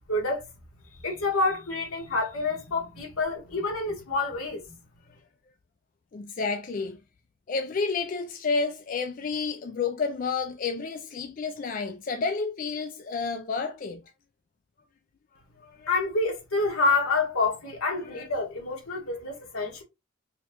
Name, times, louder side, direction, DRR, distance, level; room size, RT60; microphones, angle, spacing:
voice 1, 0.1-0.5 1.0-4.8 15.9-19.8, left 3 dB, 85° left, 1.4 m, -28 dB
voice 2, 6.1-7.0 7.5-14.0 15.6-15.9 18.0-18.3, left 4 dB, 40° left, 0.3 m, -30 dB
4.3 x 2.3 x 2.9 m
head